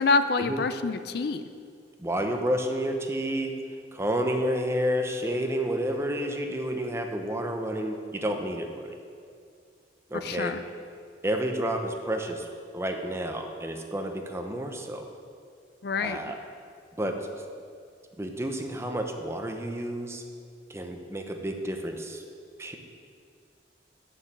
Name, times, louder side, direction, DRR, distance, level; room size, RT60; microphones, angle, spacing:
voice 1, 0.0-1.4 10.2-10.6 15.8-16.2, left 4 dB, 60° left, 10 dB, 0.4 m, -26 dB
voice 2, 2.0-3.6 3.9-9.0 10.1-10.5 11.2-12.5 12.7-15.0 16.0-16.4 17.0-17.3 18.2-20.2 20.7-22.2 22.6-22.8, equal, 15° right, 4 dB, 0.8 m, -30 dB
9.4 x 6.8 x 7.4 m, 2.3 s
head